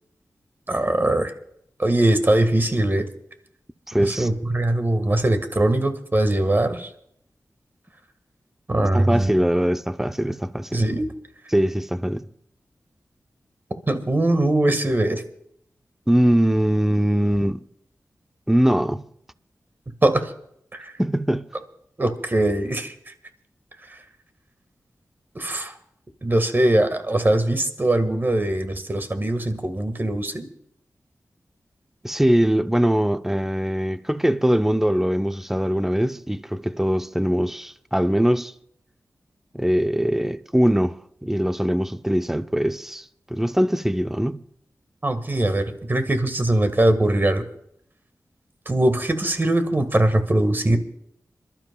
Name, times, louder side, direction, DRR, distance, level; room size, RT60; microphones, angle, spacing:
voice 1, 0.7-1.3 1.8-3.0 4.0-6.9 8.7-9.3 10.7-11.1 13.9-15.2 20.0-20.3 20.7-20.9 22.0-22.9 23.9-24.0 25.3-25.7 26.2-30.5 45.0-47.4 48.6-50.8, right 1 dB, 35° right, 1.6 m, -21 dB
voice 2, 3.9-4.3 8.9-10.8 11.5-12.3 16.1-17.6 18.5-19.0 21.0-21.5 32.0-38.5 39.5-43.0 43.3-44.4, equal, 5° right, 0.5 m, -22 dB
27.0 x 12.0 x 2.3 m
cardioid pair, 50°, 6 cm